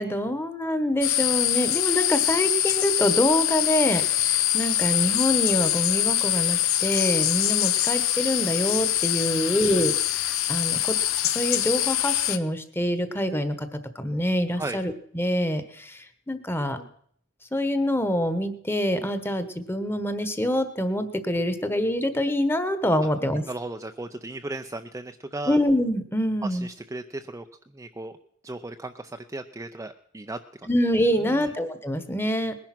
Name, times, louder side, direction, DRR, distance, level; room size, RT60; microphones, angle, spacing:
voice 1, 0.0-11.0 11.2-13.7 13.9-16.9 17.5-23.4 25.5-26.7 30.7-32.5, equal, 10° left, 11 dB, 1.2 m, -26 dB
sound 1, 1.0-12.4, left 13 dB, 70° left, 0.8 m, -24 dB
voice 2, 9.3-9.6 14.5-14.8 23.5-25.6 26.4-27.5 27.7-28.2 28.4-30.7 31.3-31.5, right 2 dB, 15° right, 6 dB, 0.5 m, -36 dB
20.0 x 10.5 x 6.0 m, 0.64 s
head